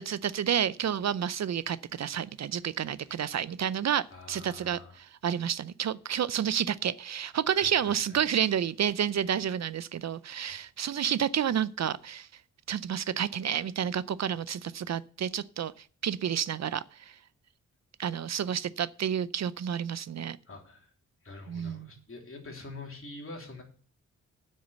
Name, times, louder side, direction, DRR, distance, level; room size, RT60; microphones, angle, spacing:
voice 1, 0.0-12.3 12.7-15.7 16.0-17.1 18.0-20.4 21.5-21.9, right 9 dB, 55° right, 0.5 m, -30 dB
voice 2, 4.1-5.0 7.5-8.2 20.5-20.9 21.2-23.6, left 3 dB, 45° left, 3.2 m, -45 dB
8.1 x 6.4 x 8.1 m
cardioid pair, 85°, 32 cm